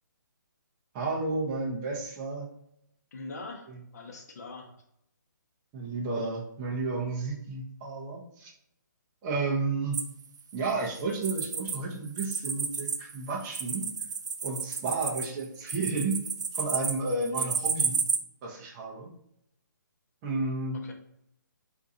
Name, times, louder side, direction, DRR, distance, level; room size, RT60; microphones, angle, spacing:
voice 1, 0.9-2.5 3.7-3.8 5.7-8.5 9.2-10.0 10.5-13.9 14.4-16.3 16.5-18.0 18.4-19.1 20.2-20.8, right 3 dB, 15° right, -3 dB, 0.5 m, -32 dB
voice 2, 3.1-4.8 20.7-20.9, left 3 dB, 55° left, 2 dB, 0.7 m, -43 dB
sound 1, 9.9-11.8 12.1-18.2, right 5 dB, 65° right, 0.5 m, -32 dB
3.6 x 2.5 x 2.7 m, 0.75 s
hypercardioid pair, 165°, 11 cm